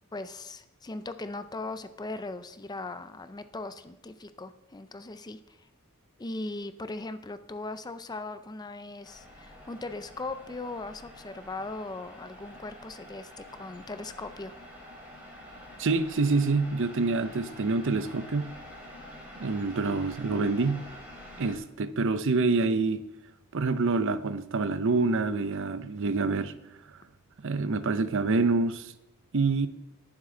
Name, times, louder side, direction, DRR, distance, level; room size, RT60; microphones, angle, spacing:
voice 1, 0.1-5.7 6.2-14.5, left 2 dB, 20° left, 0.5 m, -39 dB
sound 1, 9.0-21.6, equal, 10° right, 3.3 m, -47 dB
voice 2, 15.8-18.5 19.4-20.8 21.4-23.0 23.5-26.5 27.4-28.9 29.3-29.7, right 3 dB, 60° right, 0.6 m, -26 dB
19.0 x 7.4 x 3.8 m
head